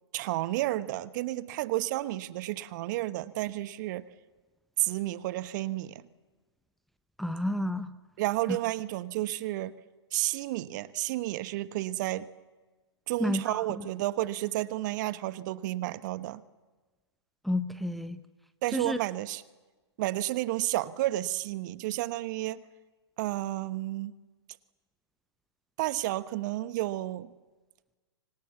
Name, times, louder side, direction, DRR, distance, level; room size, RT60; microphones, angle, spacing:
voice 1, 0.1-4.0 4.8-6.1 8.2-9.7 10.1-12.3 13.1-16.4 18.6-19.4 20.0-22.6 23.2-24.1 25.8-27.3, right 16 dB, 40° right, 15 dB, 1.1 m, -31 dB
voice 2, 7.2-7.9 8.5-8.6 13.2-13.8 17.4-18.2 18.7-19.0, left 1 dB, ahead, 11 dB, 0.8 m, -30 dB
28.5 x 25.0 x 7.2 m, 1.2 s
figure-of-eight pair, 120°, 15 cm